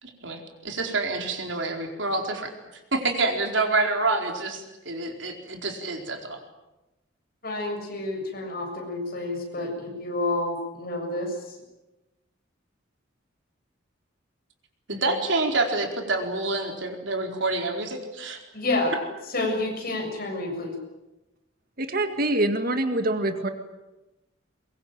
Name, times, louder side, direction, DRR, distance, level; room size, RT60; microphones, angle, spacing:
voice 1, 0.0-2.5 2.9-6.4 14.9-18.4, right 3 dB, 70° right, 3 dB, 4.5 m, -27 dB
voice 2, 7.4-11.3 18.5-18.9 19.3-20.7, left 2 dB, 50° left, 2 dB, 7.2 m, -29 dB
voice 3, 21.8-23.5, right 1 dB, 50° right, 7 dB, 2.0 m, -25 dB
23.5 x 23.0 x 9.2 m, 1.0 s
head